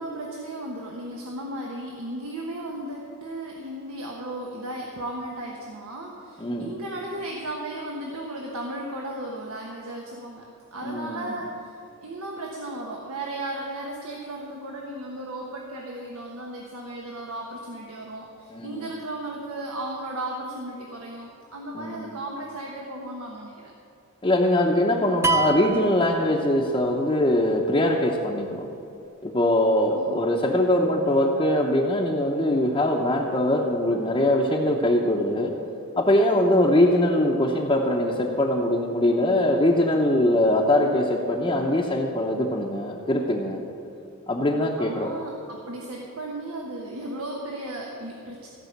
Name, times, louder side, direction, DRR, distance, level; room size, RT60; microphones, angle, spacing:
voice 1, 0.0-11.7 12.0-23.7 29.9-30.2 44.8-48.5, right 1 dB, 85° right, -1 dB, 1.3 m, -35 dB
voice 2, 10.8-11.4 18.5-18.8 21.7-22.1 24.2-28.7 29.2-35.5 36.0-43.6 44.3-45.1, left 1 dB, 25° left, -3 dB, 0.8 m, -22 dB
sound 1, 25.2-26.9, right 3 dB, 15° right, 0.5 m, -26 dB
15.0 x 5.5 x 7.9 m, 2.7 s
head